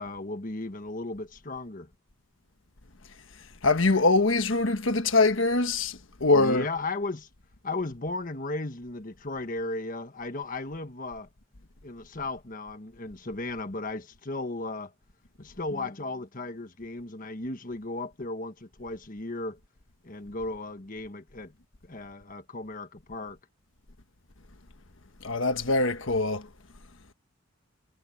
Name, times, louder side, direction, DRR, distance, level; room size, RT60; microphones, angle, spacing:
voice 1, 0.0-1.9 6.3-7.3 7.6-11.3 11.8-14.9 15.4-19.6 20.0-21.5 21.8-23.4, left 2 dB, 40° left, 1.4 m, -35 dB
voice 2, 3.6-6.7 25.2-26.4, left 3 dB, 70° left, 1.4 m, -23 dB
head